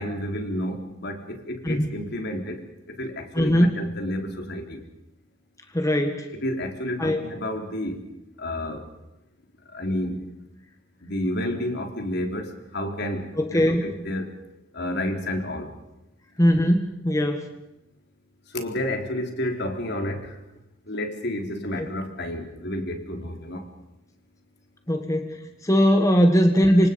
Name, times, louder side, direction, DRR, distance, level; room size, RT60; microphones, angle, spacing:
voice 1, 0.0-4.8 6.3-8.0 8.4-8.9 9.7-10.3 11.0-14.3 14.7-15.7 18.5-20.4 20.8-23.7, left 1 dB, 60° left, 4 dB, 3.8 m, -30 dB
voice 2, 3.3-3.7 5.7-6.3 7.0-7.2 13.4-13.8 16.4-17.5 21.8-21.9 24.9-26.9, equal, 15° left, 5 dB, 1.7 m, -20 dB
27.5 x 25.5 x 5.3 m, 0.91 s
head